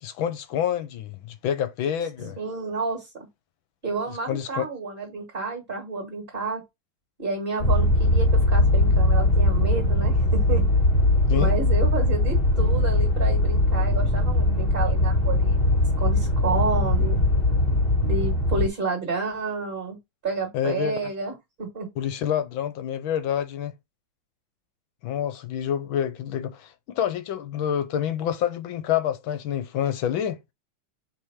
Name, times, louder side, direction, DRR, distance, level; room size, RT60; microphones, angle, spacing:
voice 1, 0.0-2.4 4.3-4.7 11.3-11.5 20.5-21.0 22.0-23.7 25.0-30.4, left 9 dB, 70° left, 1.5 m, -27 dB
voice 2, 2.2-3.3 3.8-6.6 7.2-10.6 11.3-17.2 18.0-20.0 20.2-21.9, right 4 dB, 25° right, 1.8 m, -30 dB
sound 1, 7.6-18.7, left 1 dB, 30° left, 1.6 m, -20 dB
4.8 x 3.6 x 5.6 m
omnidirectional pair, 2.4 m